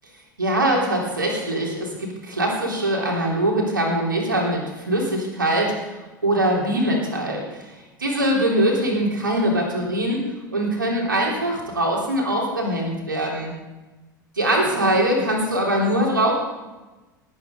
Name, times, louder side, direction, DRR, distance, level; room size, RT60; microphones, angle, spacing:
voice 1, 0.4-7.6 8.0-10.2 10.5-13.5 14.4-16.3, right 1 dB, 85° right, -1 dB, 3.5 m, -22 dB
19.0 x 9.0 x 5.4 m, 1.1 s
figure-of-eight pair, 75°, 11 cm